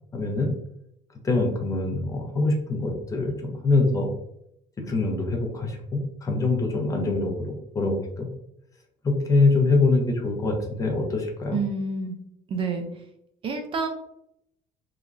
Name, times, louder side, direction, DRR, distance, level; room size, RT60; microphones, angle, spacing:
voice 1, 0.1-0.5 1.2-4.1 4.8-8.3 9.0-11.6, left 3 dB, 20° left, 1 dB, 0.5 m, -24 dB
voice 2, 11.5-12.2 12.5-12.9 13.4-13.9, right 4 dB, 35° right, 5 dB, 0.3 m, -28 dB
3.0 x 2.3 x 2.4 m, 0.76 s
cardioid pair, 150°, 15 cm